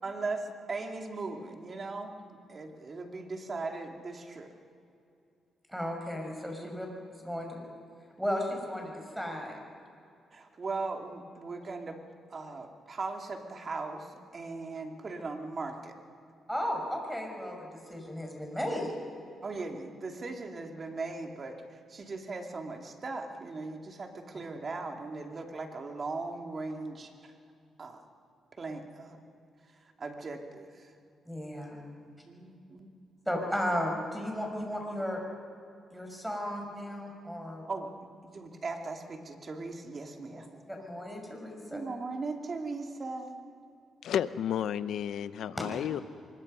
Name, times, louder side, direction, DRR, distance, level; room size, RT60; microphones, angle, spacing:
voice 1, 0.0-4.5 6.6-6.9 10.3-12.0 12.3-15.9 19.4-27.3 27.8-28.0 28.6-29.2 30.0-30.9 32.3-32.9 37.7-37.9 38.2-40.5 41.7-43.4, right 3 dB, 40° right, 3 dB, 2.6 m, -38 dB
voice 2, 5.7-7.6 8.2-9.6 16.5-18.9 31.3-31.9 33.3-35.2 35.9-37.6 40.3-41.8 45.6-45.7, equal, ahead, 2 dB, 6.0 m, -35 dB
voice 3, 44.0-46.0, left 9 dB, 75° left, 14 dB, 0.7 m, -32 dB
24.0 x 22.0 x 5.6 m, 2.5 s
cardioid pair, 85°, 0 cm